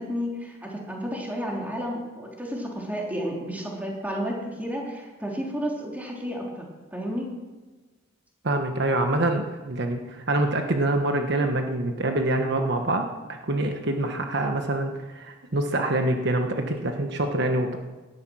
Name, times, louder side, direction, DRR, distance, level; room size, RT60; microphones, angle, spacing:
voice 1, 0.0-7.3, equal, 10° right, -2 dB, 3.3 m, -32 dB
voice 2, 8.4-13.0 13.5-17.8, right 2 dB, 60° right, 4 dB, 1.3 m, -25 dB
18.5 x 12.5 x 6.3 m, 1.3 s
head